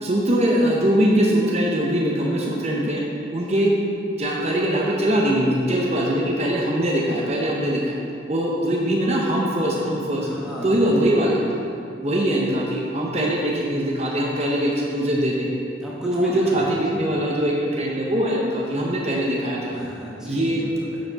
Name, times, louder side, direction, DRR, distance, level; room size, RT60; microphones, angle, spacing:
voice 1, 0.0-3.0 3.3-3.8 4.2-8.0 8.3-10.3 10.6-11.4 12.0-15.5 16.0-19.7 20.2-20.6, right 1 dB, 35° right, -3 dB, 0.9 m, -22 dB
voice 2, 10.2-10.9 15.8-17.0 19.7-21.0, equal, 5° right, -6 dB, 1.1 m, -36 dB
10.5 x 5.9 x 4.1 m, 2.4 s
head